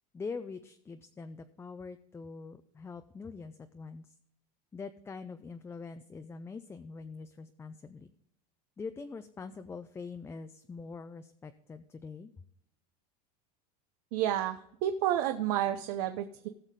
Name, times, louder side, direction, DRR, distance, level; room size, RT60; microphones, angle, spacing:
voice 1, 0.1-4.1 4.7-8.1 8.8-12.3, left 4 dB, 10° left, 8 dB, 0.4 m, -44 dB
voice 2, 14.1-16.5, right 11 dB, 75° right, 8 dB, 0.7 m, -30 dB
17.5 x 6.6 x 3.7 m, 0.74 s
supercardioid pair, 130°, 21 cm